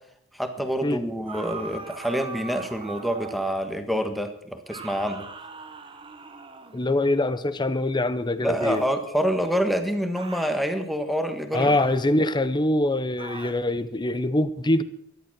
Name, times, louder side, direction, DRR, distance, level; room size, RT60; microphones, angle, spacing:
voice 1, 0.3-5.3 8.4-11.8, equal, ahead, 7 dB, 1.4 m, -27 dB
sound 1, 1.3-3.6 4.7-6.9 8.6-9.0 10.1-10.6 11.6-12.1 13.2-13.6, right 4 dB, 25° right, 1.2 m, -41 dB
voice 2, 6.7-8.9 11.5-14.8, left 1 dB, 20° left, 14 dB, 0.7 m, -24 dB
13.5 x 11.5 x 6.1 m, 0.74 s
head